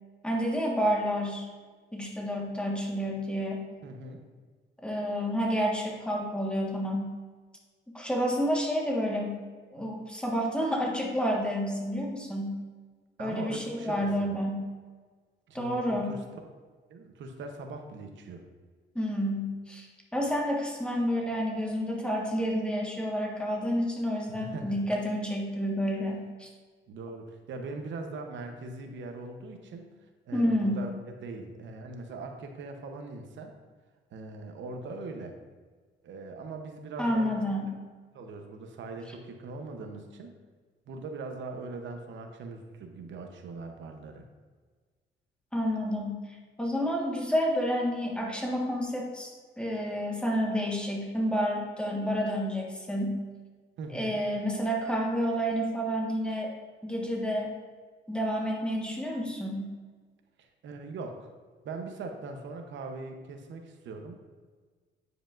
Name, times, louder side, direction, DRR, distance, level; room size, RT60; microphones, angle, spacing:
voice 1, 0.2-1.5 1.9-3.7 4.8-7.1 7.9-9.4 9.7-12.6 13.2-14.7 15.5-16.1 18.9-26.5 30.3-30.9 37.0-37.7 45.5-46.1 46.6-53.2 53.9-56.5 56.8-57.5 58.1-59.7, equal, 5° left, -1 dB, 1.5 m, -29 dB
voice 2, 3.8-4.2 13.2-14.4 15.5-16.2 16.9-18.4 24.3-24.8 26.9-29.9 30.3-33.5 34.1-35.3 36.0-37.4 38.1-40.3 40.9-44.2 53.8-54.2 60.4-61.3 61.6-64.2, right 3 dB, 70° right, 4 dB, 0.9 m, -41 dB
9.3 x 4.9 x 2.5 m, 1.5 s
cardioid pair, 90°, 20 cm